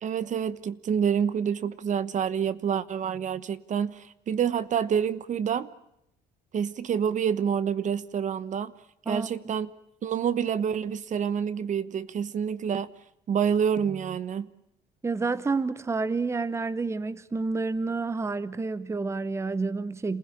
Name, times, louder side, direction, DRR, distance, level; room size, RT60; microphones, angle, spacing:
voice 1, 0.0-5.7 6.5-8.7 9.1-9.7 10.0-12.9 13.3-14.5, right 7 dB, 45° right, 1.1 m, -27 dB
voice 2, 15.0-20.2, right 3 dB, 15° right, 0.9 m, -29 dB
28.0 x 15.5 x 9.8 m
cardioid pair, 110°, 17 cm